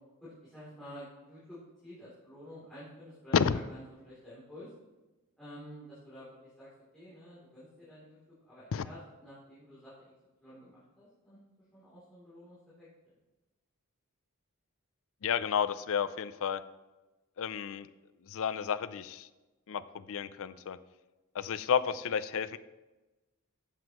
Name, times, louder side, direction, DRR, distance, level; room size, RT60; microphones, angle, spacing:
voice 1, 0.2-4.7 5.4-10.1 10.4-11.4 11.7-13.1, equal, 5° left, -12 dB, 3.2 m, -50 dB
voice 2, 15.2-16.6 17.4-17.9 18.3-19.3 19.7-20.8 21.3-22.6, left 7 dB, 65° left, 14 dB, 0.4 m, -31 dB
11.5 x 7.8 x 3.0 m, 1.1 s
head